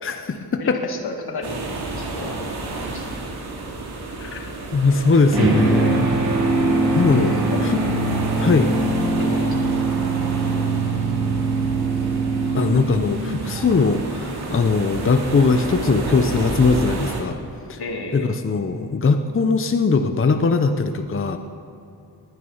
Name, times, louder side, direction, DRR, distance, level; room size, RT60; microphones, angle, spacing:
voice 1, 0.0-0.8 4.2-4.5 4.7-6.1 6.9-7.8 8.4-8.7 12.5-17.4 17.7-17.8 18.1-21.4, left 4 dB, 35° left, 7 dB, 0.8 m, -20 dB
voice 2, 0.6-1.6 2.0-2.4 2.9-3.0 7.1-8.0 9.2-9.6 12.8-12.9 17.8-18.3, left 3 dB, 80° left, 3 dB, 2.1 m, -33 dB
sound 1, 1.4-17.2, right 2 dB, 80° right, 2.7 m, -31 dB
sound 2, 5.3-13.6, right 3 dB, 65° right, 3.5 m, -22 dB
19.5 x 11.0 x 5.7 m, 2.7 s
wide cardioid pair, 110°, 38 cm